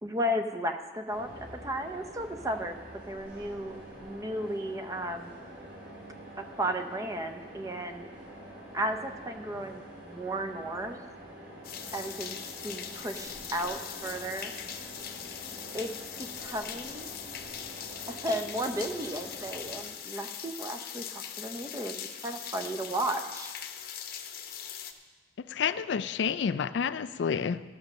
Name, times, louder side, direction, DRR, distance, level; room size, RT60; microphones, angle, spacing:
voice 1, 0.0-5.3 6.4-8.1 8.7-11.1 11.9-14.5 15.7-15.9 16.2-17.1 18.1-23.5, right 1 dB, 20° right, 7 dB, 0.6 m, -34 dB
sound 1, 1.1-19.8, right 1 dB, 70° right, 3.4 m, -47 dB
sound 2, 11.6-24.9, left 9 dB, 55° left, 0.7 m, -41 dB
voice 2, 25.5-27.6, left 6 dB, 80° left, 14 dB, 0.4 m, -29 dB
13.0 x 6.1 x 6.5 m, 1.3 s
head